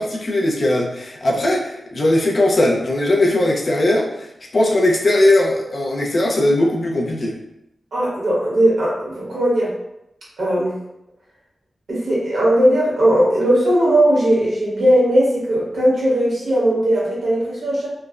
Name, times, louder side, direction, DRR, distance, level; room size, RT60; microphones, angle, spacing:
voice 1, 0.0-7.4, left 1 dB, 40° left, -1 dB, 0.4 m, -19 dB
voice 2, 7.9-9.7 10.4-10.7 11.9-17.9, right 1 dB, 80° right, -7 dB, 1.2 m, -18 dB
3.1 x 2.1 x 2.3 m, 0.85 s
wide cardioid pair, 175°, 0 cm